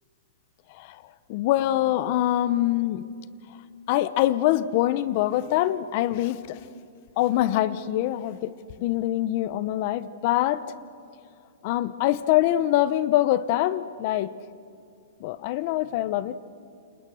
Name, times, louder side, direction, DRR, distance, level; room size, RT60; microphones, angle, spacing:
voice 1, 0.7-1.0 1.3-3.1 3.9-6.6 7.2-10.6 11.6-14.3 15.2-16.4, left 14 dB, 40° left, 16 dB, 0.8 m, -24 dB
29.0 x 28.5 x 6.4 m, 2.4 s
hypercardioid pair, 160°, 0 cm